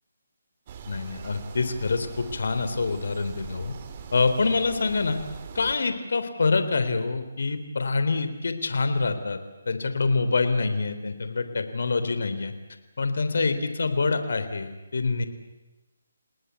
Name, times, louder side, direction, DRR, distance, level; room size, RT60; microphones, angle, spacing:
sound 1, 0.7-5.7, right 7 dB, 35° right, 3.1 m, -42 dB
voice 1, 0.9-3.7 4.1-5.2 5.6-9.4 9.7-12.5 13.0-15.2, left 3 dB, 70° left, 10 dB, 3.7 m, -26 dB
30.0 x 19.5 x 8.3 m, 1.1 s
hypercardioid pair, 155°, 0 cm